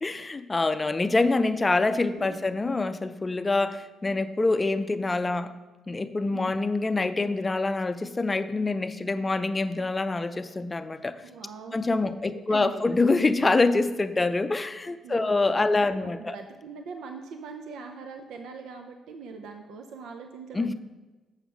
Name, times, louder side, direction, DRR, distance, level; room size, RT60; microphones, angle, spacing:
voice 1, 0.0-5.5 5.9-11.2 11.7-16.4 20.5-20.7, left 3 dB, 25° left, 11 dB, 0.5 m, -25 dB
voice 2, 11.2-11.8 12.2-12.9 15.0-20.7, right 5 dB, 80° right, 4 dB, 0.6 m, -42 dB
7.2 x 5.3 x 6.0 m, 1.2 s
cardioid pair, 90°, 0 cm